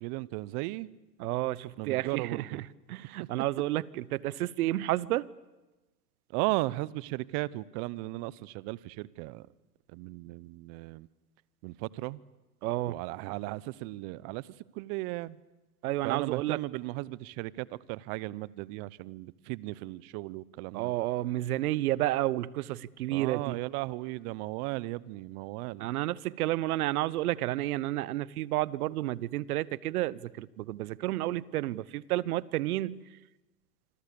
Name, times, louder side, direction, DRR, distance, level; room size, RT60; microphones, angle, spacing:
voice 1, 0.0-0.9 1.8-2.6 6.3-9.5 9.9-11.1 11.6-12.2 12.9-14.4 14.8-15.4 16.0-20.9 23.1-25.9, right 21 dB, 40° right, 21 dB, 0.8 m, -36 dB
voice 2, 1.2-5.3 12.6-13.0 15.8-16.6 20.7-23.6 25.8-33.0, right 15 dB, 65° right, 21 dB, 1.0 m, -31 dB
26.5 x 25.5 x 6.9 m, 1.1 s
hypercardioid pair, 110°, 48 cm